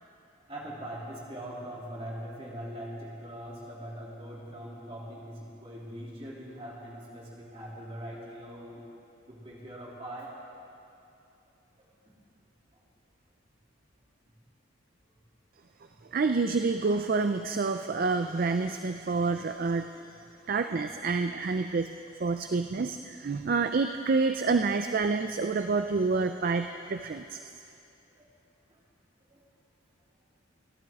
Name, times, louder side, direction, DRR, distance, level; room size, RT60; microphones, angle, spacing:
voice 1, 0.5-8.8 9.3-10.3 11.8-12.1 15.9-16.0 23.5-23.6 28.1-28.3 28.7-28.8 29.3-29.4, right 1 dB, 30° right, -5 dB, 2.9 m, -42 dB
voice 2, 16.1-19.9 20.5-21.9 22.2-27.4, right 4 dB, 45° right, 8 dB, 0.4 m, -28 dB
27.5 x 12.0 x 3.6 m, 2.7 s
head